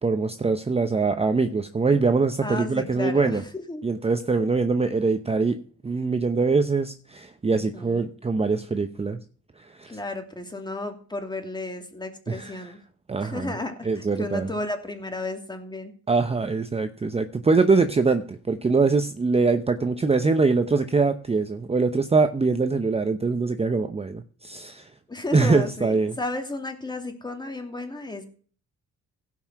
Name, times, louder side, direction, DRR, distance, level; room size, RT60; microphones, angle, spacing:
voice 1, 0.0-3.4 3.8-5.6 5.8-9.2 9.6-10.0 12.3-12.7 13.1-13.6 13.8-14.5 16.1-24.9 25.3-26.2, right 4 dB, 20° right, 8 dB, 0.8 m, -23 dB
voice 2, 2.4-3.4 3.7-3.8 7.5-8.0 9.9-12.8 13.2-15.9 25.1-28.3, left 2 dB, 15° left, 5 dB, 2.7 m, -33 dB
16.5 x 5.7 x 5.9 m, 0.44 s
cardioid pair, 90°, 30 cm